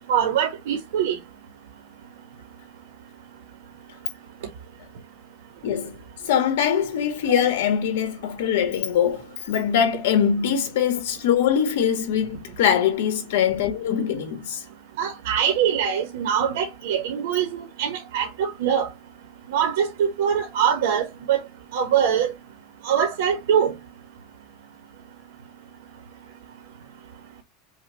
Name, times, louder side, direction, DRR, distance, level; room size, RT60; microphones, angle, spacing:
voice 1, 0.1-1.2 15.0-18.9 19.5-21.4 21.7-22.3 22.8-23.7, right 8 dB, 80° right, 1.1 m, -23 dB
voice 2, 5.6-14.6, left 8 dB, 85° left, 1.5 m, -23 dB
5.6 x 2.3 x 2.9 m
supercardioid pair, 170°, 0 cm